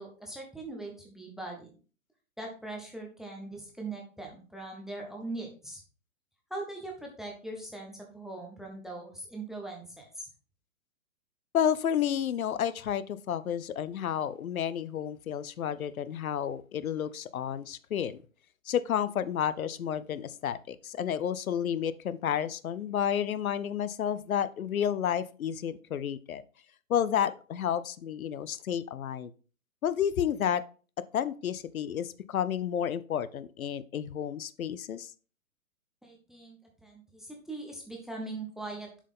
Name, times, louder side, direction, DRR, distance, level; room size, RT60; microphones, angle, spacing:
voice 1, 0.0-1.7 2.4-5.8 6.5-10.3 36.0-38.9, right 2 dB, ahead, 0 dB, 0.5 m, -41 dB
voice 2, 11.5-18.2 18.7-26.4 26.9-29.3 29.8-30.6 31.1-35.1, left 9 dB, 80° left, 16 dB, 0.7 m, -31 dB
7.1 x 4.6 x 3.6 m, 0.37 s
hypercardioid pair, 135°, 41 cm